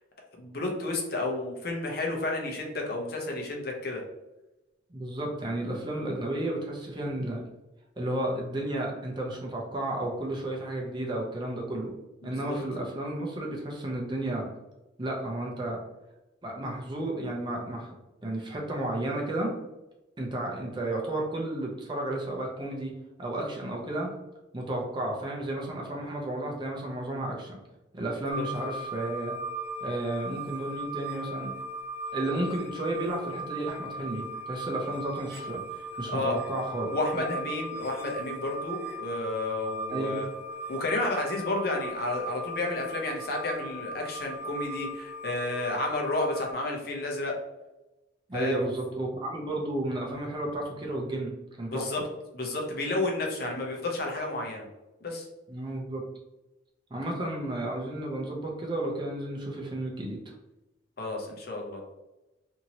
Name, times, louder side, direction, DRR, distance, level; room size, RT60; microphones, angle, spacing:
voice 1, 0.4-4.0 12.2-12.6 36.1-36.4 36.9-40.3 40.7-47.4 48.3-48.7 51.6-52.0 52.3-54.7 55.0-55.3 61.0-61.8, left 2 dB, 55° left, 0 dB, 0.7 m, -31 dB
voice 2, 4.9-7.4 8.0-11.9 12.2-14.5 15.0-15.8 16.4-17.9 18.2-19.5 20.2-22.9 23.2-24.1 24.5-27.6 27.9-29.4 29.8-31.5 32.1-37.4 39.9-40.3 48.3-51.3 51.6-51.9 55.5-56.0 56.9-60.2, right 1 dB, 25° right, -1 dB, 0.6 m, -32 dB
sound 1, 28.3-46.5, right 2 dB, 50° right, 0.9 m, -38 dB
2.8 x 2.7 x 2.8 m, 1.0 s
head